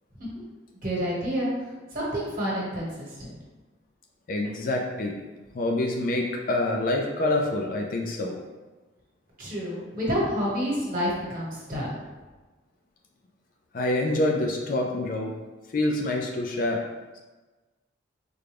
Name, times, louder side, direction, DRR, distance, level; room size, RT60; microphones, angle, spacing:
voice 1, 0.8-1.5 1.9-2.9 3.2-3.4 9.4-12.0, equal, 45° right, -7 dB, 1.2 m, -28 dB
voice 2, 4.3-5.2 5.5-8.4 13.7-15.3 15.7-16.8, left 1 dB, 45° left, 2 dB, 0.4 m, -26 dB
3.7 x 2.2 x 3.3 m, 1.2 s
head